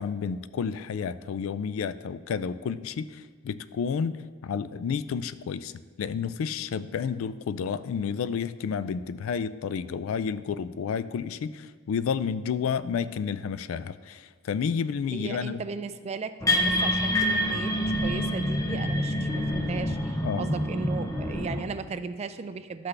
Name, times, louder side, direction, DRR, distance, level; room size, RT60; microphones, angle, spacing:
voice 1, 0.0-5.7 6.0-15.6 20.2-20.4, left 6 dB, 70° left, 15 dB, 0.3 m, -31 dB
voice 2, 15.1-22.9, right 4 dB, 30° right, 11 dB, 0.3 m, -36 dB
sound 1, 16.4-21.6, left 1 dB, 15° left, 0.6 m, -27 dB
12.0 x 5.9 x 3.3 m, 1.5 s
head